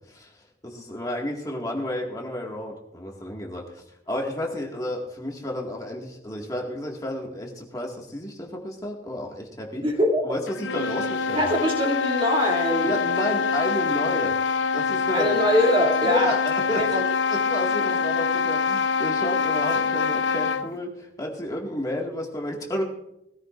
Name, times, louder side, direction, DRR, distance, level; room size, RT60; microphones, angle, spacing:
voice 1, 0.1-9.9 10.2-11.6 12.8-14.4 14.7-15.3 16.0-17.0 17.3-22.8, left 1 dB, 20° left, -1 dB, 1.9 m, -31 dB
voice 2, 9.8-10.2 11.3-13.0 15.1-16.3 16.8-17.0 17.8-18.0, equal, 30° right, 0 dB, 2.7 m, -23 dB
sound 1, 10.5-20.8, left 5 dB, 90° left, 0.8 m, -25 dB
20.5 x 15.0 x 2.6 m, 0.81 s
head